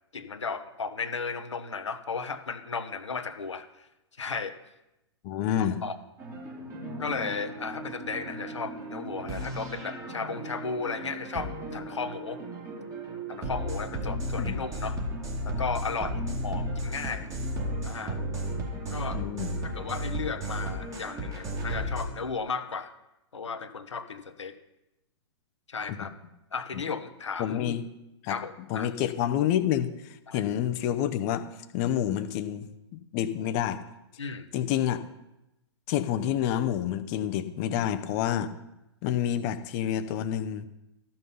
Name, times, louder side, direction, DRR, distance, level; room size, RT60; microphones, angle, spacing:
voice 1, 0.1-3.9 4.2-4.6 5.6-5.9 7.0-12.4 13.3-15.0 15.4-17.3 17.8-18.2 18.9-19.2 19.6-22.9 23.3-24.6 25.7-26.1 26.5-27.6 28.3-28.9 30.3-30.4 34.2-34.5, left 5 dB, 80° left, 9 dB, 1.1 m, -35 dB
voice 2, 5.2-5.8 14.4-14.6 19.1-19.5 25.9-26.0 27.4-27.9 28.2-28.4 28.7-31.5 31.7-33.8 34.5-35.1 35.9-38.5 39.0-40.7, left 10 dB, 35° left, 10 dB, 0.8 m, -28 dB
sound 1, 6.2-22.0, equal, 20° right, 2.5 m, -34 dB
13.5 x 5.9 x 5.5 m, 0.93 s
figure-of-eight pair, 115°, 15 cm